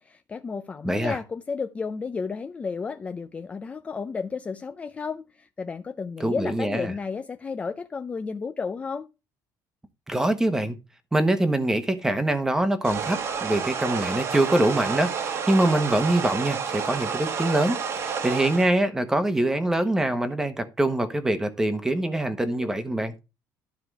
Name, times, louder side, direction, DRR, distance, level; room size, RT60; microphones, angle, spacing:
voice 1, 0.0-9.1, left 5 dB, 20° left, 0.5 m, -32 dB
voice 2, 0.8-1.2 6.2-6.9 10.1-10.8 11.1-23.1, right 1 dB, 5° right, 1.1 m, -24 dB
sound 1, 12.8-18.7, right 6 dB, 40° right, 1.3 m, -30 dB
12.5 x 4.8 x 4.7 m
cardioid pair, 165°, 7 cm